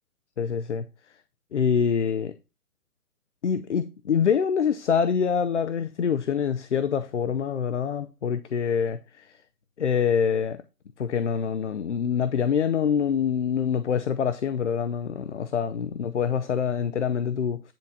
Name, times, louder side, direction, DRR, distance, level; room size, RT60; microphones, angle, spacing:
voice 1, 0.4-0.9 1.5-2.3 3.4-9.3 9.8-10.6 11.0-17.6, left 7 dB, 50° left, 0.6 m, -25 dB
10.5 x 4.0 x 5.8 m
hypercardioid pair, 170°, 48 cm